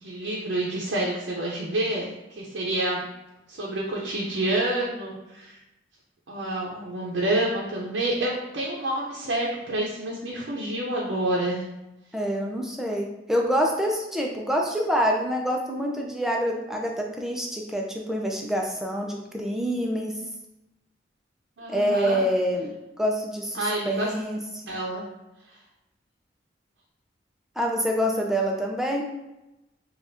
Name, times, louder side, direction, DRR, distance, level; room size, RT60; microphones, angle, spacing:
voice 1, 0.0-3.1 3.5-5.6 6.3-11.6 21.6-22.2 23.5-24.1 24.7-25.0, right 1 dB, 85° right, -4 dB, 0.6 m, -28 dB
voice 2, 12.1-20.1 21.7-22.7 23.0-24.6 27.6-29.0, equal, 5° right, 0 dB, 0.5 m, -26 dB
5.0 x 2.4 x 2.6 m, 0.96 s
head